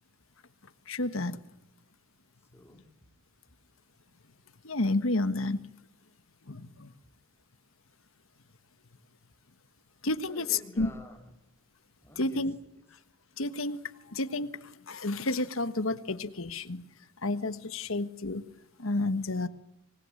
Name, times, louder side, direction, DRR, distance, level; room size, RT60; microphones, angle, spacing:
voice 1, 0.9-1.4 4.6-5.6 6.5-6.9 10.0-10.9 12.2-12.5 13.4-13.8 14.1-16.8 17.2-18.4 18.8-19.5, left 2 dB, 70° left, 1.5 m, -30 dB
voice 2, 2.5-3.1 10.2-11.5 12.0-12.8, left 1 dB, 10° left, 2.7 m, -50 dB
25.5 x 19.5 x 9.9 m
head